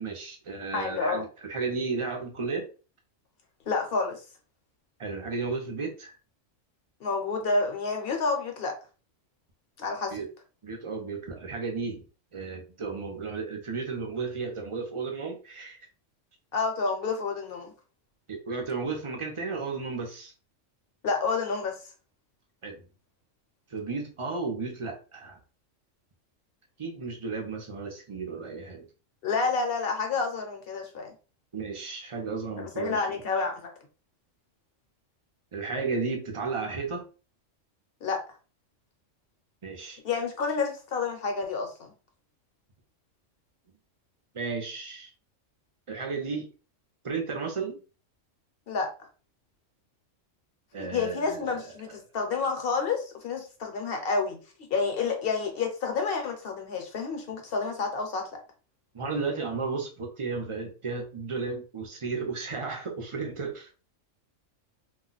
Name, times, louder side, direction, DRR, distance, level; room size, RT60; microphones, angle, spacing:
voice 1, 0.0-2.7 5.0-6.2 10.1-10.3 10.6-15.9 18.3-20.3 22.6-22.8 23.7-25.4 26.8-28.8 31.5-33.1 35.5-37.0 39.6-40.0 44.3-45.1 45.9-46.5 47.0-47.8 50.7-52.0 58.9-63.7, right 4 dB, 35° right, 2 dB, 0.5 m, -34 dB
voice 2, 0.7-1.2 3.7-4.2 7.0-8.8 9.8-10.2 16.5-17.7 21.0-21.8 29.2-31.1 32.6-33.7 38.0-38.2 40.0-41.9 48.7-48.9 50.8-54.4 54.7-58.3, left 4 dB, 55° left, 3 dB, 0.9 m, -29 dB
2.4 x 2.2 x 3.9 m, 0.35 s
omnidirectional pair, 1.3 m